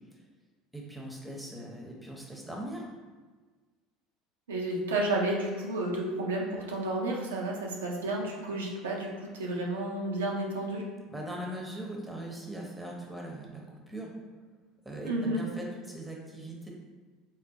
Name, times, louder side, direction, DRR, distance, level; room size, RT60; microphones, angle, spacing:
voice 1, 0.7-2.8 11.1-13.6 13.9-14.1 14.8-16.7, right 1 dB, 5° right, -2 dB, 0.7 m, -40 dB
voice 2, 4.5-10.8 15.1-15.4, right 2 dB, 85° right, -2 dB, 0.4 m, -31 dB
3.7 x 2.0 x 2.6 m, 1.4 s
hypercardioid pair, 70°, 0 cm